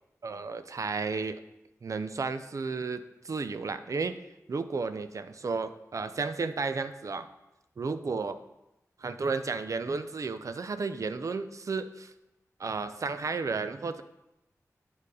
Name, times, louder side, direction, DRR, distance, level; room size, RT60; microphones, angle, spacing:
voice 1, 0.2-1.4 1.8-4.2 4.5-7.3 7.8-8.4 9.0-12.1 12.6-14.0, right 4 dB, 60° right, 11 dB, 0.5 m, -33 dB
8.7 x 4.6 x 4.8 m, 0.92 s
cardioid pair, 60°, 6 cm